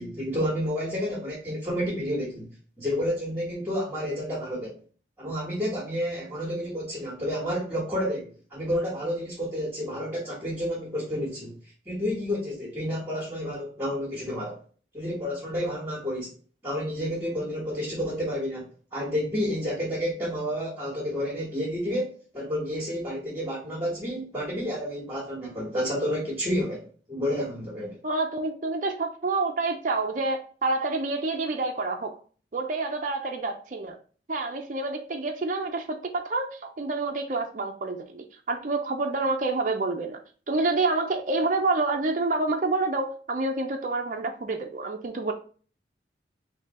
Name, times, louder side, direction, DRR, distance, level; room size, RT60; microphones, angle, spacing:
voice 1, 0.0-2.5 2.8-4.8 5.2-11.6 11.8-14.6 14.9-16.3 16.6-18.7 18.9-28.0, equal, 15° right, -7 dB, 1.3 m, -30 dB
voice 2, 28.0-32.2 32.5-34.0 34.3-40.2 40.5-45.3, right 3 dB, 45° right, 3 dB, 0.5 m, -28 dB
3.7 x 2.7 x 4.2 m, 0.41 s
head